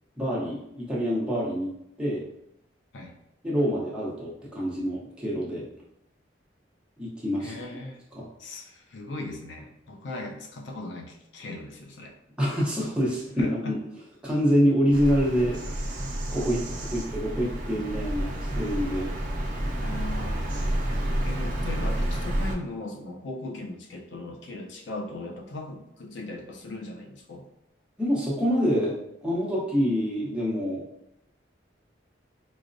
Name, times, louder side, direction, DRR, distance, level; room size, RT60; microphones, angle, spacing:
voice 1, 0.2-1.7 2.0-2.2 3.4-5.6 7.0-7.5 8.2-8.3 12.4-13.8 14.2-15.6 16.3-19.1 28.0-30.8, equal, 5° right, -6 dB, 0.7 m, -26 dB
voice 2, 7.4-8.0 8.4-12.1 13.4-13.7 16.8-16.9 19.8-20.4 21.2-27.5, left 2 dB, 75° left, 1 dB, 0.5 m, -38 dB
Bird vocalization bird call bird song, 14.9-22.5, right 1 dB, 40° right, 0.6 m, -30 dB
4.6 x 2.1 x 2.6 m, 0.79 s
head